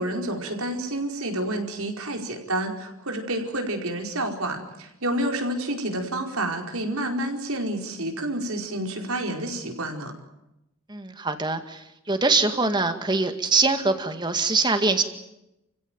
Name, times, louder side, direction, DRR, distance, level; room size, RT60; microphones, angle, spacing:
voice 1, 0.0-10.1, right 1 dB, 75° right, 3 dB, 4.9 m, -29 dB
voice 2, 10.9-15.0, right 3 dB, 20° right, 8 dB, 2.0 m, -23 dB
30.0 x 16.0 x 9.3 m, 0.88 s
head